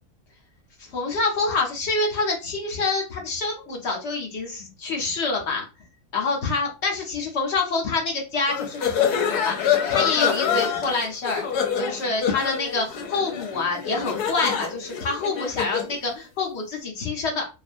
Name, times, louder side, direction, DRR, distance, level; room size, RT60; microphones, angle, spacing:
voice 1, 0.8-5.6 6.1-11.4 11.8-17.4, left 3 dB, 55° left, 0 dB, 1.0 m, -27 dB
sound 1, 8.5-15.9, left 8 dB, 85° left, 1.2 m, -26 dB
2.6 x 2.4 x 2.5 m, 0.30 s
omnidirectional pair, 1.6 m